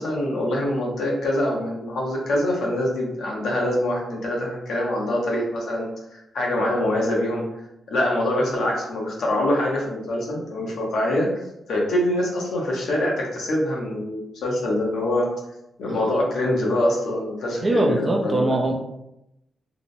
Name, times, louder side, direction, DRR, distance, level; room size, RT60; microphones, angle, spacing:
voice 1, 0.0-7.4 7.9-11.4 11.7-15.3 15.8-18.6, left 1 dB, 75° left, -2 dB, 0.7 m, -24 dB
voice 2, 17.6-18.7, right 1 dB, 25° right, 1 dB, 0.3 m, -21 dB
2.9 x 2.0 x 2.5 m, 0.85 s
wide cardioid pair, 150°, 0 cm